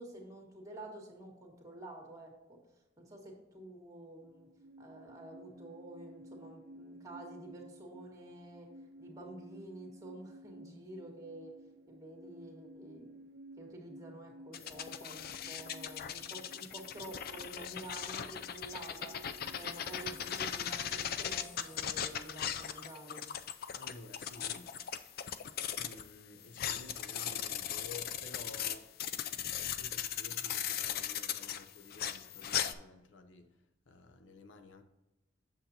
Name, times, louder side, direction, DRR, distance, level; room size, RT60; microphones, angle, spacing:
voice 1, 0.0-2.6 3.0-4.5 4.8-8.7 9.0-11.5 11.9-13.1 13.6-19.2 19.6-23.2, right 1 dB, 20° right, 1.8 m, -49 dB
sound 1, 4.2-21.4, right 1 dB, 75° right, 0.6 m, -55 dB
sound 2, 14.5-26.1 26.4-32.7, left 9 dB, 55° left, 0.4 m, -38 dB
voice 2, 23.8-24.7 25.7-28.9 29.7-33.5 33.9-34.8, left 3 dB, 80° left, 0.8 m, -52 dB
8.1 x 7.2 x 2.9 m
head